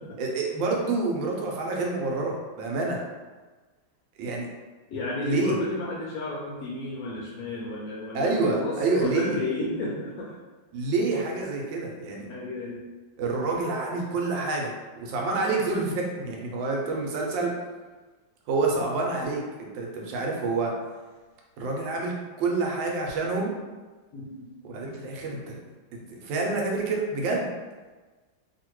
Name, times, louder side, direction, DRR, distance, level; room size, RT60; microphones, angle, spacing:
voice 1, 0.2-3.0 4.2-4.5 5.2-5.5 8.1-9.4 10.7-12.3 13.2-17.5 18.5-20.7 21.6-22.1 22.4-23.5 24.6-25.6 25.9-27.5, right 3 dB, 80° right, -1 dB, 1.3 m, -28 dB
voice 2, 4.9-10.3 12.3-12.9 24.1-24.4, left 2 dB, 75° left, -5 dB, 0.9 m, -32 dB
2.8 x 2.8 x 3.0 m, 1.3 s
omnidirectional pair, 2.0 m